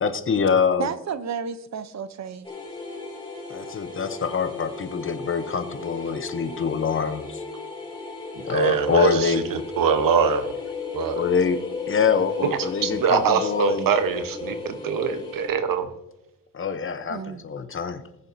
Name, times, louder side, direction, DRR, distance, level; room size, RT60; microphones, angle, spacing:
voice 1, 0.0-0.9 3.5-7.4 8.4-9.4 11.2-11.6 11.9-13.9 16.5-18.0, left 6 dB, 40° left, 0.8 m, -25 dB
voice 2, 0.8-2.5 17.1-17.4, right 7 dB, 55° right, 0.7 m, -32 dB
sound 1, 2.4-15.5, left 4 dB, 15° left, 3.2 m, -35 dB
voice 3, 8.3-10.5 10.9-11.2 12.4-15.9, right 6 dB, 80° right, 1.1 m, -23 dB
20.0 x 7.0 x 2.7 m
wide cardioid pair, 135°, 33 cm